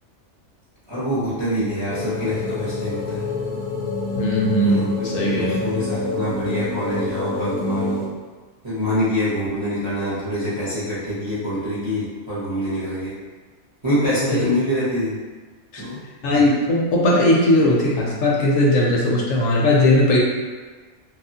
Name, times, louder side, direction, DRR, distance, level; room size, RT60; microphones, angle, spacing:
voice 1, 0.9-3.2 4.6-5.1 5.3-8.0 8.6-13.1 13.8-15.2 15.8-16.0, equal, 30° right, -11 dB, 0.5 m, -25 dB
sound 1, 1.9-8.1, left 3 dB, 90° left, 1.1 m, -26 dB
voice 2, 4.2-5.6 14.3-14.5 15.7-15.8 16.2-20.2, left 1 dB, 70° left, -3 dB, 0.9 m, -18 dB
2.9 x 2.4 x 2.7 m, 1.4 s
omnidirectional pair, 1.5 m